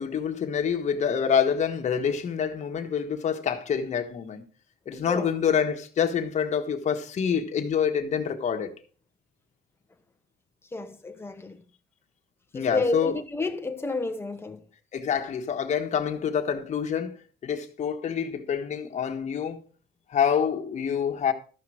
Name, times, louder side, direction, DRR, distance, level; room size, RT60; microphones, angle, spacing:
voice 1, 0.0-4.4 4.8-8.7 12.5-13.2 14.9-17.2 17.4-19.6 20.1-21.3, left 7 dB, 45° left, 1.5 m, -27 dB
voice 2, 4.9-5.3 10.7-11.6 12.5-14.6, left 3 dB, 15° left, 1.1 m, -30 dB
13.5 x 5.8 x 4.9 m
cardioid pair, 110°, 17 cm